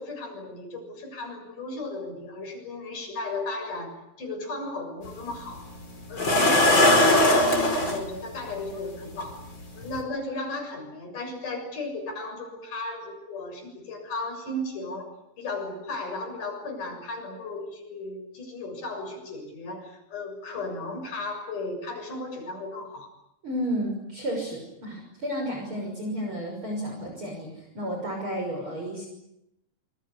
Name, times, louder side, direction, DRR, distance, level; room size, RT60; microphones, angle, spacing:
voice 1, 0.0-5.7 6.1-9.4 9.7-15.1 15.4-23.1, left 2 dB, 55° left, 1 dB, 8.5 m, -35 dB
sound 1, 5.0-5.1 6.2-8.0 9.2-9.3 9.8-10.0, left 1 dB, 30° left, 5.3 m, -19 dB
voice 2, 23.4-29.1, equal, 30° right, 1 dB, 6.8 m, -32 dB
27.5 x 23.5 x 8.4 m, 0.83 s
omnidirectional pair, 4.4 m